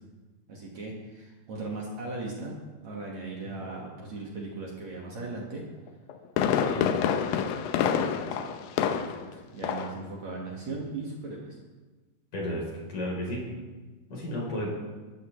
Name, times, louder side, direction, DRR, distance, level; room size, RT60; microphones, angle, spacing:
voice 1, 0.5-2.5 2.8-5.6 6.6-7.4 8.3-8.5 8.9-11.6, right 3 dB, 50° right, -3 dB, 2.7 m, -38 dB
Fireworks, 5.9-9.3 9.6-10.0 10.3-10.4, left 8 dB, 75° left, 2.4 m, -27 dB
voice 2, 12.3-13.4 14.1-14.7, equal, 45° left, -3 dB, 5.0 m, -33 dB
21.0 x 13.5 x 3.2 m, 1.3 s
omnidirectional pair, 4.5 m